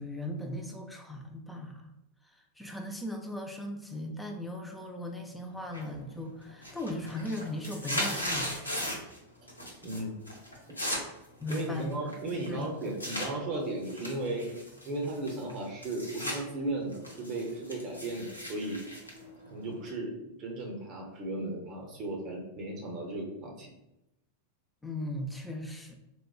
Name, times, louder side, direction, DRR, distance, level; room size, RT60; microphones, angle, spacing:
voice 1, 0.0-1.9 2.2-8.7 11.4-12.0 12.5-12.7 24.8-26.0, left 1 dB, 5° left, 2 dB, 0.4 m, -38 dB
sound 1, 5.7-6.2 6.5-9.2 9.5-10.0 10.3-13.3 13.8-16.4 16.7-19.9, left 1 dB, 80° left, 0.6 m, -37 dB
voice 2, 9.8-10.2 11.5-14.5 14.9-18.8 19.4-23.7, right 2 dB, 35° right, 0 dB, 0.6 m, -35 dB
4.1 x 2.1 x 2.3 m, 0.88 s
figure-of-eight pair, 90°, 0 cm